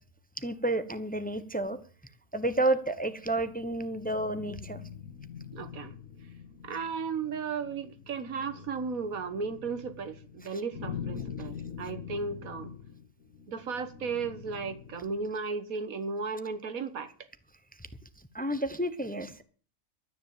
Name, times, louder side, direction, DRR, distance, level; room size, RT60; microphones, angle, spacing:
voice 1, 0.4-1.8 2.3-4.8 10.5-10.6 17.8-17.9 18.2-19.4, right 1 dB, 5° left, 0.8 m, -31 dB
sound 1, 2.7-15.3, left 8 dB, 80° left, 1.9 m, -44 dB
voice 2, 5.5-6.0 6.6-12.7 13.5-17.3, right 5 dB, 90° right, 1.8 m, -35 dB
13.0 x 10.0 x 7.4 m
omnidirectional pair, 1.4 m